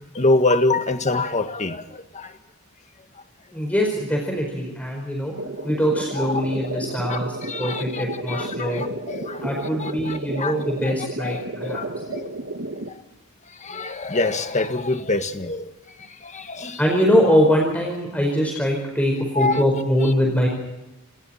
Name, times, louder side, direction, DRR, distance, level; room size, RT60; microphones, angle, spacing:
voice 1, 0.1-2.3 6.2-6.4 7.1-7.2 7.5-9.5 9.8-10.6 10.8-10.9 11.2-11.8 12.1-12.3 13.6-15.6 16.2-16.8 19.3-19.6, left 2 dB, 30° left, 1.7 m, -25 dB
voice 2, 3.5-5.3 5.6-8.8 9.4-11.9 16.8-20.5, equal, 5° left, 4.8 m, -22 dB
sound 1, 5.4-12.9, right 2 dB, 60° right, 2.1 m, -32 dB
29.5 x 28.0 x 4.4 m
head